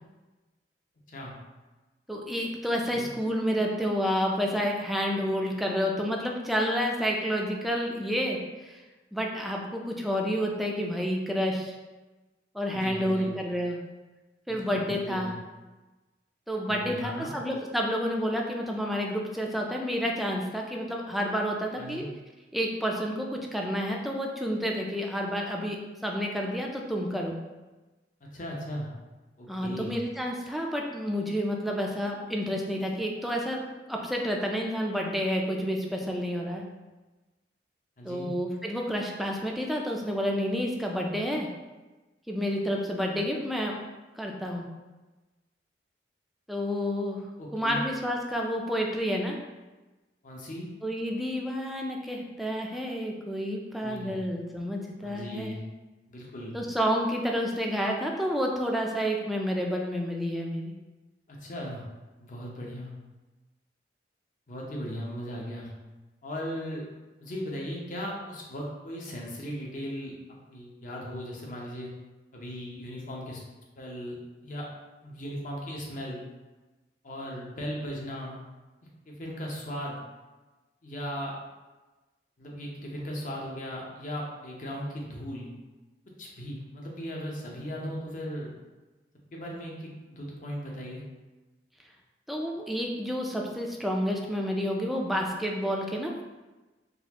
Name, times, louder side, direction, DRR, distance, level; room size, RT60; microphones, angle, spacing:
voice 1, 2.1-8.8 9.1-11.8 12.5-13.8 14.5-15.3 16.5-22.1 22.5-27.4 29.5-33.6 33.9-36.6 38.0-41.5 42.3-43.8 44.2-44.7 46.5-47.2 47.5-49.4 50.8-55.6 56.5-60.7 92.3-96.2, equal, ahead, 0 dB, 0.4 m, -29 dB
voice 2, 12.7-13.3 14.5-15.3 16.7-17.4 21.8-22.1 28.2-28.9 29.4-30.0 38.0-38.3 47.4-47.9 50.2-50.6 53.8-54.2 55.0-55.6 56.1-56.5 61.3-61.8 62.2-62.9 64.5-65.7 66.2-66.8 67.2-70.1 70.5-71.9 72.3-73.4 73.8-74.2 74.4-74.7 75.0-76.2 77.0-78.4 79.1-80.0 80.8-81.4 82.4-85.5 86.2-88.5 89.3-91.0, equal, 50° left, -2 dB, 0.8 m, -37 dB
4.0 x 2.4 x 2.9 m, 1.2 s
head